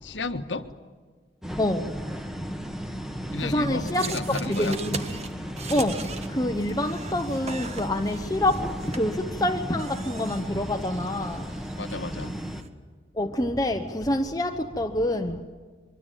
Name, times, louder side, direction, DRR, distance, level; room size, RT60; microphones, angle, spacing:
voice 1, 0.0-0.7 3.3-4.8 11.8-12.4, left 3 dB, 80° left, 1.6 m, -32 dB
sound 1, 1.4-12.6, equal, 5° right, 1.6 m, -35 dB
voice 2, 3.4-5.0 5.7-6.0 6.4-8.6 9.0-9.1 9.4-11.4 13.2-15.4, left 1 dB, 20° left, 1.1 m, -26 dB
sound 2, 3.9-12.7, right 4 dB, 35° right, 1.7 m, -40 dB
24.0 x 24.0 x 9.2 m
head